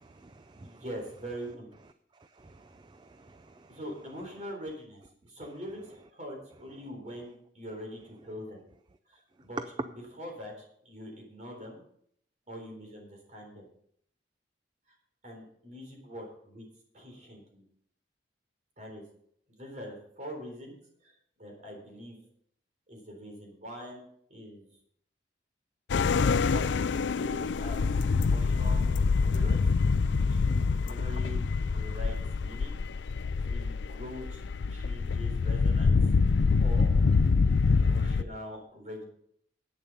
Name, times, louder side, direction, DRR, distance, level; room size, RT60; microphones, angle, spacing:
voice 1, 0.0-0.8 2.4-3.8, right 2 dB, 25° right, 10 dB, 0.4 m, -54 dB
voice 2, 0.6-1.7 3.7-8.6 9.1-9.6 9.9-11.8 12.5-13.7 15.2-16.7 16.9-17.6 18.8-19.0 19.5-20.8 21.0-22.2 22.9-24.7 26.4-27.8 28.2-28.9 29.2-29.7 30.3-32.8 33.4-34.4 34.7-35.9 36.6-36.9 37.8-39.0, equal, 40° right, 1 dB, 3.9 m, -43 dB
sound 1, 25.9-38.2, left 4 dB, 75° left, 0.4 m, -26 dB
11.0 x 8.6 x 5.5 m, 0.66 s
head